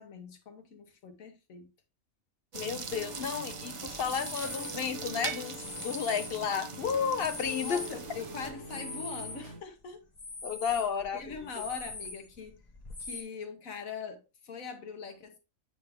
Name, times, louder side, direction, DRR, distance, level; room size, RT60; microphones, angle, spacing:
voice 1, 0.0-1.7 7.6-10.0 11.1-12.6 13.0-15.4, left 5 dB, 80° left, 1.6 m, -42 dB
voice 2, 2.5-5.6 5.8-7.8 10.4-11.7, left 7 dB, 55° left, 0.7 m, -32 dB
sound 1, 2.5-8.5, right 5 dB, 40° right, 0.4 m, -41 dB
sound 2, 2.5-9.6, equal, 60° right, 1.8 m, -45 dB
sound 3, 4.0-4.9 5.6-6.6 7.0-9.5 9.8-13.2, left 3 dB, 30° left, 1.6 m, -43 dB
9.3 x 3.5 x 3.5 m
omnidirectional pair, 1.4 m